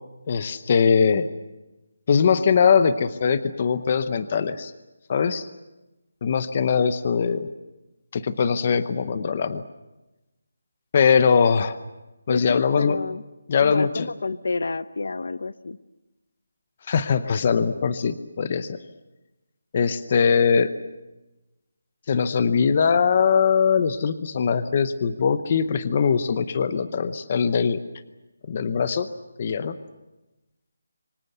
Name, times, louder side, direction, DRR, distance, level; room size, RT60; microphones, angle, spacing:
voice 1, 0.3-1.3 2.1-4.7 5.1-5.4 6.2-7.5 8.1-9.6 10.9-11.8 12.3-13.0 13.5-14.1 16.9-18.8 19.7-20.7 22.1-27.8 28.5-29.1 29.4-29.8, left 6 dB, 25° left, 13 dB, 0.8 m, -21 dB
voice 2, 12.3-13.2 13.6-15.8, left 3 dB, 55° left, 15 dB, 0.8 m, -29 dB
27.5 x 24.5 x 6.8 m, 1.0 s
hypercardioid pair, 180°, 0 cm